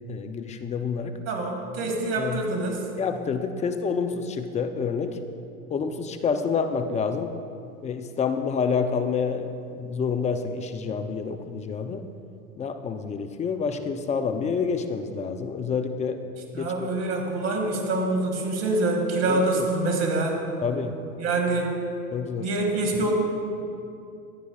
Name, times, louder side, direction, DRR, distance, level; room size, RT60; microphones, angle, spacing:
voice 1, 0.0-1.2 2.2-2.5 3.0-5.2 5.7-7.3 7.8-12.0 12.6-16.2 16.6-17.0 19.3-19.7 20.6-21.0 22.1-22.5, left 5 dB, 15° left, 8 dB, 0.5 m, -28 dB
voice 2, 1.3-2.8 16.5-20.4 21.2-21.7 22.4-23.1, right 2 dB, 35° right, 2 dB, 2.1 m, -25 dB
14.5 x 9.5 x 2.4 m, 2.6 s
hypercardioid pair, 100°, 42 cm